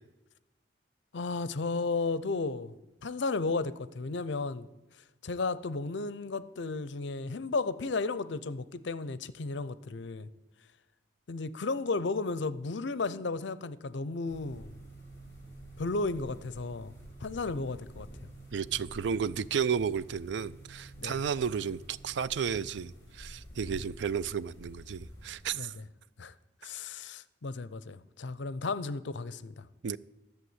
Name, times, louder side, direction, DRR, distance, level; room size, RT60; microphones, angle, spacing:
voice 1, 1.1-2.7 3.0-4.7 5.2-10.3 11.3-14.7 15.8-16.9 17.2-18.1 21.0-21.2 25.5-25.8 26.2-26.3 26.6-29.7, left 3 dB, 70° left, 0.6 m, -34 dB
sound 1, 14.3-25.5, right 1 dB, 15° left, 3.5 m, -49 dB
voice 2, 18.5-25.7 29.8-30.0, right 7 dB, 70° right, 0.4 m, -33 dB
11.5 x 7.1 x 7.9 m
head